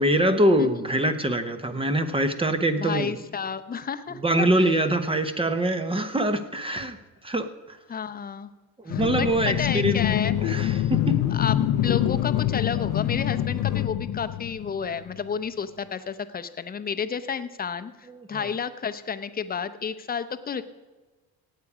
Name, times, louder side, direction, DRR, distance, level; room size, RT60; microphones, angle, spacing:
voice 1, 0.0-3.1 4.2-7.0 7.2-7.8 8.8-10.0 10.4-11.2 18.1-18.5, right 1 dB, 15° right, 9 dB, 0.8 m, -24 dB
voice 2, 2.8-4.8 7.9-8.5 8.9-10.5 11.3-11.6 11.8-20.6, left 6 dB, 25° left, 11 dB, 0.7 m, -31 dB
sound 1, 8.9-15.1, left 12 dB, 60° left, 0.7 m, -25 dB
17.0 x 8.5 x 4.9 m, 1.3 s
cardioid pair, 120°, 37 cm